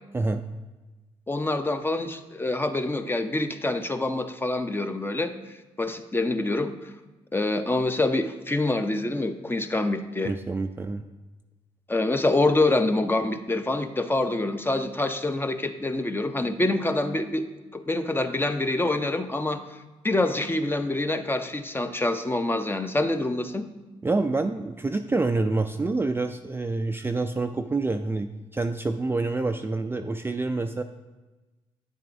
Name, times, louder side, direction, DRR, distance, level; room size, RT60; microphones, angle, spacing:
voice 1, 1.3-5.3 5.8-6.7 7.3-10.3 11.9-17.4 17.7-19.6 20.0-23.6, left 2 dB, 15° left, 7 dB, 0.7 m, -26 dB
voice 2, 10.2-11.0 24.0-30.8, right 3 dB, 20° right, 6 dB, 0.4 m, -27 dB
9.1 x 7.5 x 2.6 m, 1.2 s
supercardioid pair, 55°, 13 cm